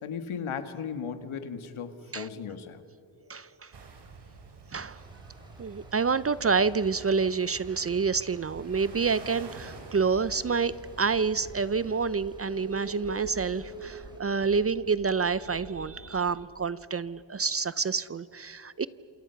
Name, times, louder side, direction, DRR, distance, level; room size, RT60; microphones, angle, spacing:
voice 1, 0.0-2.8, left 6 dB, 80° left, 9 dB, 1.8 m, -36 dB
voice 2, 3.3-3.7 4.7-5.0 5.6-18.9, right 5 dB, 30° right, 17 dB, 0.5 m, -28 dB
sound 1, 3.7-12.0, right 3 dB, 55° right, 3.4 m, -48 dB
sound 2, 5.0-14.2, right 1 dB, 10° right, 3.6 m, -58 dB
sound 3, 8.3-16.2, right 2 dB, 75° right, 7.9 m, -45 dB
27.5 x 27.5 x 5.8 m, 2.8 s
wide cardioid pair, 120°, 49 cm